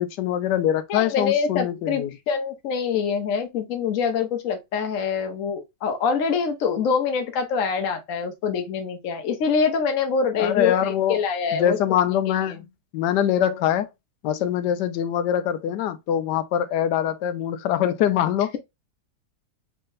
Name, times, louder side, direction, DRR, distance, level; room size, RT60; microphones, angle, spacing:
voice 1, 0.0-2.1 10.4-11.2 11.5-12.7 12.9-13.9 14.2-18.5, left 10 dB, 80° left, 1.2 m, -23 dB
voice 2, 0.9-11.8, left 6 dB, 60° left, 1.1 m, -25 dB
3.5 x 3.2 x 2.5 m
omnidirectional pair, 1.8 m